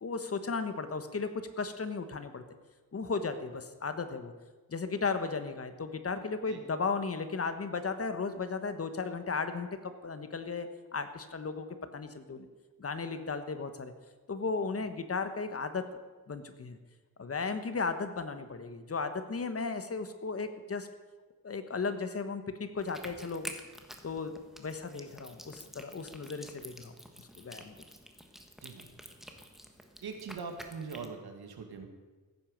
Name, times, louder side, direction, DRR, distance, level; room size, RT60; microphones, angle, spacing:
voice 1, 0.0-2.4 2.9-4.3 4.7-11.7 11.9-12.5 12.8-13.9 14.3-16.0 16.3-16.8 17.2-20.9 21.4-23.5 24.0-26.9 27.2-27.7, left 4 dB, 40° left, 9 dB, 1.2 m, -35 dB
sound 1, 22.8-31.1, equal, ahead, 1.3 m, -49 dB
voice 2, 30.0-31.9, right 5 dB, 90° right, 5 dB, 2.1 m, -42 dB
15.5 x 9.2 x 6.4 m, 1.3 s
wide cardioid pair, 125°, 37 cm